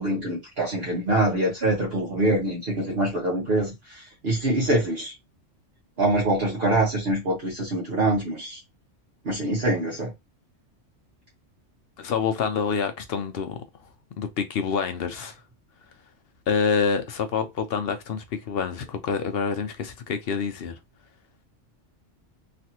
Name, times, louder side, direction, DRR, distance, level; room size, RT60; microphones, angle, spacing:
voice 1, 0.0-5.1 6.0-8.6 9.2-10.1, right 1 dB, 55° right, 1.3 m, -24 dB
voice 2, 12.0-13.6 14.2-15.4 16.5-20.8, left 6 dB, 60° left, 0.7 m, -27 dB
3.2 x 2.5 x 2.8 m
omnidirectional pair, 1.3 m